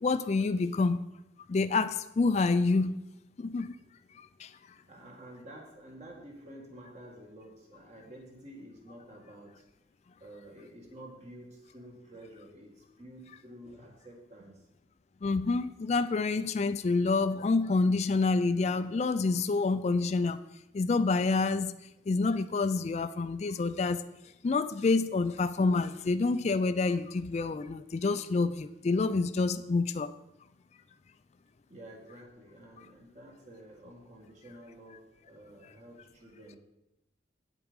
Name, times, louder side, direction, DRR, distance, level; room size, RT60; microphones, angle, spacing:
voice 1, 0.0-1.1 1.5-3.0 3.4-3.8 4.2-4.5 15.2-20.4 20.7-21.7 22.1-24.0 24.4-30.1, left 3 dB, 35° left, 11 dB, 0.3 m, -28 dB
voice 2, 4.9-9.6 10.2-14.7 31.0-31.1 31.7-36.6, right 1 dB, 40° right, 0 dB, 2.0 m, -50 dB
8.4 x 7.8 x 5.2 m, 0.89 s
head